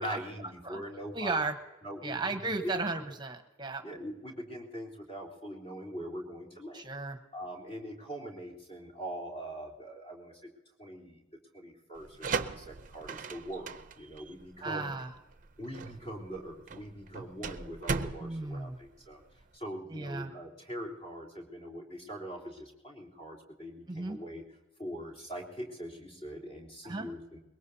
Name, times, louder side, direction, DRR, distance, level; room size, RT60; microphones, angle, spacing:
voice 1, 0.0-1.4 1.8-2.8 3.8-6.9 7.3-10.5 10.8-11.2 11.5-15.0 15.6-19.2 19.5-24.4 24.8-27.4, equal, 35° left, -4 dB, 3.6 m, -42 dB
voice 2, 1.1-1.6 2.0-3.8 6.7-7.2 14.6-15.1 18.2-18.8 19.9-20.3 23.9-24.2 26.8-27.1, right 3 dB, 25° right, 7 dB, 1.0 m, -35 dB
sound 1, 12.0-19.6, right 4 dB, 45° right, 0.6 m, -38 dB
23.0 x 21.5 x 2.8 m, 1.0 s
head